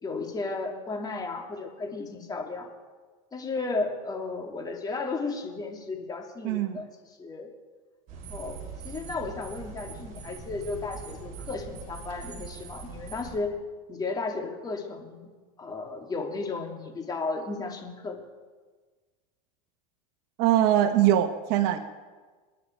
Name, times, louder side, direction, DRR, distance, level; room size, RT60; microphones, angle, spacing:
voice 1, 0.0-2.7 3.3-6.9 7.2-7.5 8.3-13.6 13.9-15.3 15.6-18.2, left 3 dB, 20° left, 2 dB, 2.7 m, -34 dB
voice 2, 6.4-6.8 20.4-21.8, right 11 dB, 60° right, 8 dB, 1.2 m, -22 dB
sound 1, 8.1-13.4, right 5 dB, 40° right, 3.9 m, -42 dB
27.0 x 10.5 x 4.6 m, 1.4 s
supercardioid pair, 115°, 18 cm